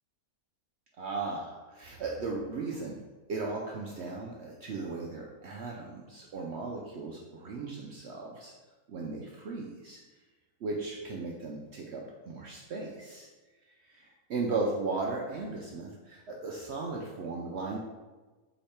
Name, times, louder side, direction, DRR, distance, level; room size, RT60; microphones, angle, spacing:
voice 1, 1.0-3.0 3.3-8.5 8.9-10.0 10.6-13.3 13.7-17.8, right 3 dB, 70° right, -1 dB, 0.6 m, -36 dB
3.8 x 3.3 x 4.2 m, 1.3 s
omnidirectional pair, 1.6 m